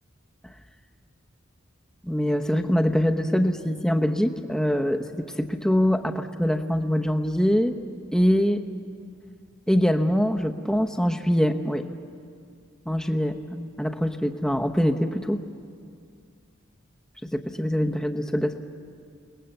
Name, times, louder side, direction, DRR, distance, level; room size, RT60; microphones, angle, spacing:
voice 1, 2.0-7.8 8.1-8.6 9.7-11.8 12.9-15.4 17.3-18.6, equal, 5° left, 5 dB, 1.0 m, -24 dB
29.0 x 20.0 x 7.9 m, 2.3 s
head